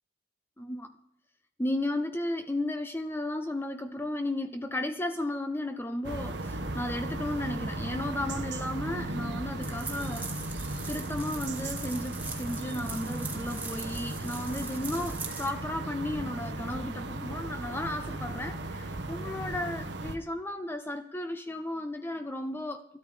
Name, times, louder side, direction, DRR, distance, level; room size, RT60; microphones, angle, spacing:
voice 1, 0.6-1.0 1.6-10.6 10.9-23.0, left 1 dB, 15° left, 8 dB, 0.6 m, -34 dB
sound 1, 6.0-20.2, right 2 dB, 75° right, 1.2 m, -36 dB
sound 2, 9.6-15.5, right 3 dB, 10° right, 1.8 m, -42 dB
13.5 x 12.5 x 5.1 m, 0.75 s
head